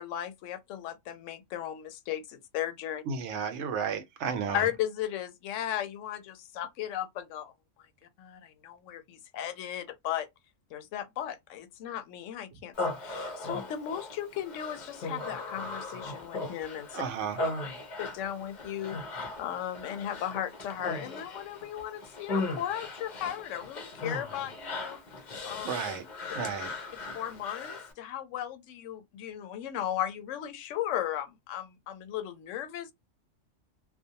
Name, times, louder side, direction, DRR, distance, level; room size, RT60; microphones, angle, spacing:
voice 1, 0.0-3.0 4.5-7.5 8.2-10.3 10.7-17.0 18.0-25.0 25.4-25.7 27.1-32.9, left 11 dB, 75° left, 0.9 m, -36 dB
voice 2, 3.1-4.6 16.9-17.4 25.6-26.0 26.3-26.7, right 6 dB, 70° right, 0.9 m, -32 dB
Human voice, 12.7-27.9, left 2 dB, 45° left, 0.6 m, -38 dB
2.4 x 2.1 x 2.7 m
omnidirectional pair, 1.3 m